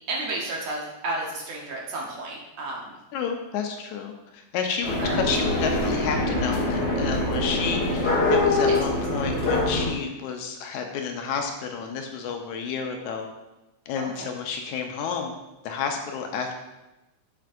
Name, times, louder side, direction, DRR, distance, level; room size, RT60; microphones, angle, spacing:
voice 1, 0.1-3.0 5.0-5.2 8.7-8.8 14.0-14.3, right 2 dB, 65° right, -2 dB, 1.9 m, -32 dB
voice 2, 3.1-13.3 13.9-15.3 15.6-16.5, left 6 dB, 80° left, 3 dB, 1.9 m, -30 dB
sound 1, 4.8-9.9, left 1 dB, 55° left, 0.6 m, -24 dB
7.8 x 6.7 x 2.5 m, 0.99 s
omnidirectional pair, 3.6 m